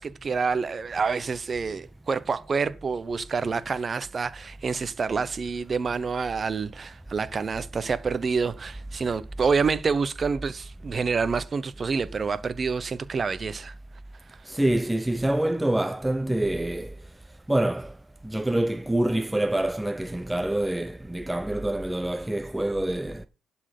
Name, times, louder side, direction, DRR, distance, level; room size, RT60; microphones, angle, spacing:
voice 1, 0.0-13.7, right 5 dB, 40° right, 0.8 m, -27 dB
voice 2, 14.4-17.0 17.5-18.0 18.2-23.3, right 1 dB, 10° right, 0.5 m, -26 dB
11.5 x 4.4 x 6.7 m
cardioid pair, 90°, 0 cm